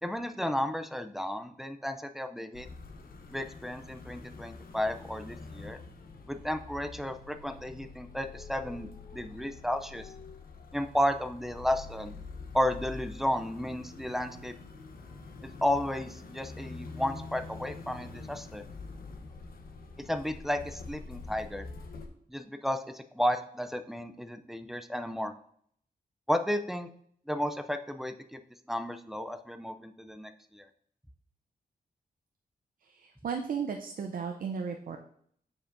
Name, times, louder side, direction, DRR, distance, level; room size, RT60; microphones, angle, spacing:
voice 1, 0.0-2.7 3.3-5.8 6.3-10.1 10.7-12.2 12.5-14.5 15.4-18.6 20.0-21.7 22.3-25.3 26.3-26.9 27.3-28.4 28.7-30.7, left 1 dB, ahead, 8 dB, 0.3 m, -33 dB
sound 1, 2.5-22.1, left 3 dB, 70° left, 0.8 m, -46 dB
voice 2, 32.9-35.0, right 6 dB, 65° right, 4 dB, 0.5 m, -35 dB
7.2 x 7.0 x 2.6 m, 0.65 s
wide cardioid pair, 165°, 16 cm